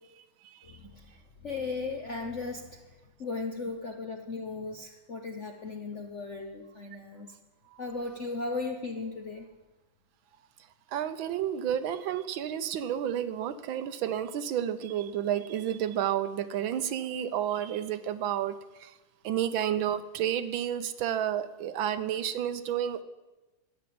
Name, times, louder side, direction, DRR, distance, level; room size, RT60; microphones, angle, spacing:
voice 1, 0.6-7.3 7.8-9.5, left 3 dB, 55° left, 4 dB, 0.8 m, -37 dB
voice 2, 10.9-18.9 19.2-23.0, right 10 dB, 70° right, 12 dB, 1.3 m, -31 dB
12.5 x 9.1 x 7.6 m, 1.1 s
omnidirectional pair, 2.4 m